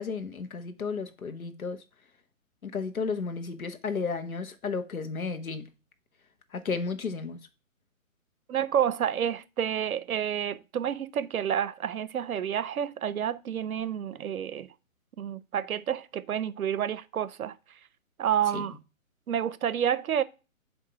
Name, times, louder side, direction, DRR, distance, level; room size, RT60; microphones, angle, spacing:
voice 1, 0.0-1.8 2.6-5.7 6.5-7.4 18.5-18.6, left 4 dB, 90° left, 1.1 m, -33 dB
voice 2, 8.5-14.7 15.2-17.6 18.2-18.8 19.3-20.2, right 9 dB, 85° right, 0.6 m, -29 dB
8.0 x 2.7 x 4.5 m
hypercardioid pair, 150°, 42 cm